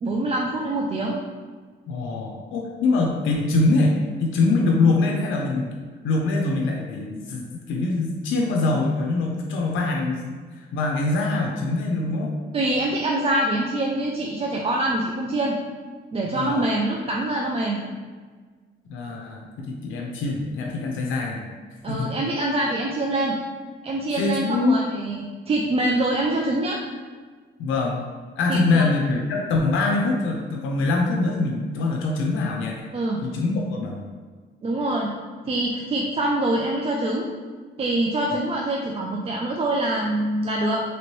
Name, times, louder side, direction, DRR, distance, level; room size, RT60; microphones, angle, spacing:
voice 1, 0.0-1.1 12.5-15.5 16.1-17.8 21.8-23.4 23.8-26.8 28.5-28.8 32.9-33.2 34.6-35.1 35.5-37.3 37.8-40.8, right 1 dB, 30° right, -2 dB, 0.4 m, -24 dB
voice 2, 1.9-12.3 16.3-16.7 18.9-21.4 21.9-22.1 24.2-24.8 27.6-28.0 28.4-32.9 33.2-34.0, left 3 dB, 80° left, 0 dB, 0.5 m, -24 dB
3.0 x 2.9 x 3.0 m, 1.5 s
cardioid pair, 90°, 20 cm